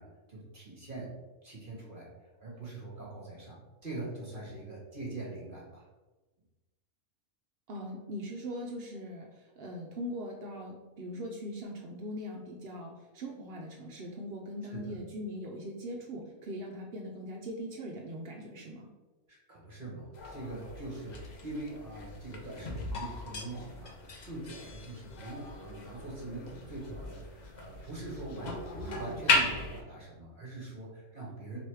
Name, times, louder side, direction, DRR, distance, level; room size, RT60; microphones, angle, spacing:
voice 1, 0.0-2.1 2.4-5.8 14.7-15.0 19.3-31.6, right 2 dB, 40° right, -4 dB, 0.9 m, -43 dB
voice 2, 7.7-18.9, equal, 75° right, 0 dB, 0.5 m, -41 dB
sound 1, 20.1-29.8, left 2 dB, 70° left, 0.4 m, -36 dB
3.1 x 3.0 x 4.5 m, 1.2 s
omnidirectional pair, 1.5 m